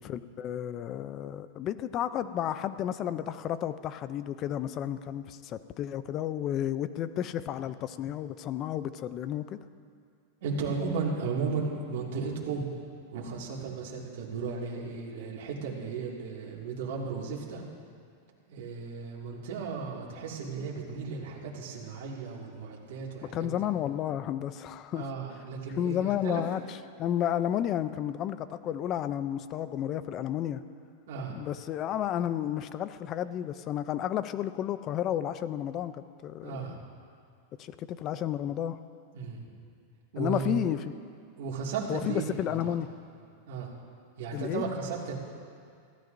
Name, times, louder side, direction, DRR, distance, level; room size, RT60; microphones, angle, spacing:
voice 1, 0.0-9.6 23.2-25.1 25.8-30.6 31.3-36.8 37.6-38.8 40.2-40.8 41.9-42.9 44.3-44.6, left 11 dB, 30° left, 13 dB, 0.4 m, -32 dB
voice 2, 10.4-12.7 13.1-17.6 18.5-23.5 24.9-26.4 31.1-31.4 36.4-36.8 39.1-39.5 40.1-40.6 41.4-42.7 43.5-43.7 44.2-45.2, right 5 dB, 65° right, -3 dB, 2.1 m, -35 dB
20.5 x 15.0 x 2.6 m, 2.3 s
supercardioid pair, 155°, 0 cm